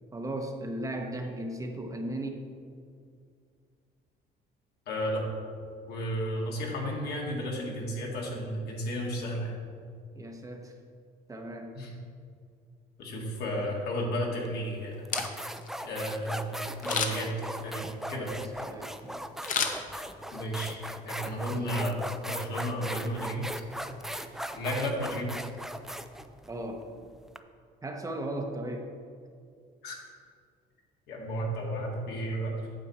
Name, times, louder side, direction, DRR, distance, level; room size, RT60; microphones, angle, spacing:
voice 1, 0.1-2.5 10.1-10.7 11.3-11.7 18.1-19.3 26.5-26.9 27.8-28.9, right 1 dB, 20° right, 3 dB, 0.9 m, -36 dB
voice 2, 4.9-5.3 5.9-9.6 11.7-11.9 13.0-14.9 15.8-18.4 20.3-20.8 21.1-23.5 24.5-25.3 29.8-30.0 31.1-32.6, equal, 70° left, -2 dB, 2.0 m, -33 dB
sound 1, 14.5-14.6 15.1-27.4, right 1 dB, ahead, 0.4 m, -38 dB
Camera, 14.9-15.7 16.8-17.4 19.4-20.4 20.8-20.9, left 6 dB, 50° left, 0.9 m, -31 dB
8.8 x 7.0 x 4.2 m, 2.3 s
cardioid pair, 110°, 17 cm